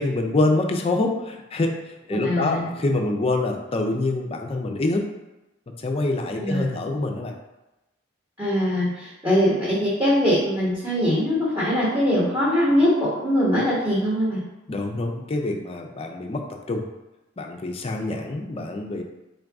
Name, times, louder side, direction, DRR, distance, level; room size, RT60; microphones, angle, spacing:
voice 1, 0.0-1.7 2.1-5.0 5.8-7.3 14.7-16.8 17.4-19.0, left 2 dB, 30° left, 3 dB, 0.4 m, -25 dB
voice 2, 2.2-2.7 6.3-6.6 8.4-14.4, equal, 15° right, -10 dB, 1.2 m, -22 dB
3.8 x 2.5 x 3.4 m, 0.99 s
head